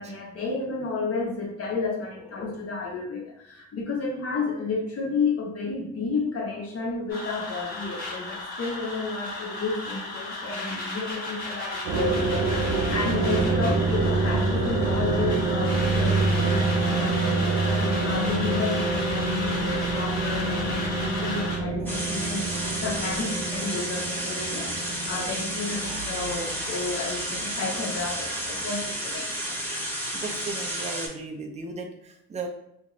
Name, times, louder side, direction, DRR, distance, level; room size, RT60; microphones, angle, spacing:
voice 1, 0.0-29.6, left 3 dB, 50° left, -1 dB, 1.0 m, -32 dB
sound 1, 7.1-21.6, left 2 dB, 30° left, 1.2 m, -34 dB
sound 2, 11.8-28.1, right 3 dB, 70° right, 0.6 m, -27 dB
sound 3, 21.9-31.1, equal, 5° left, 0.9 m, -32 dB
voice 2, 30.1-32.5, right 3 dB, 20° right, 2 dB, 0.5 m, -36 dB
2.6 x 2.5 x 3.1 m, 0.78 s
cardioid pair, 90°, 30 cm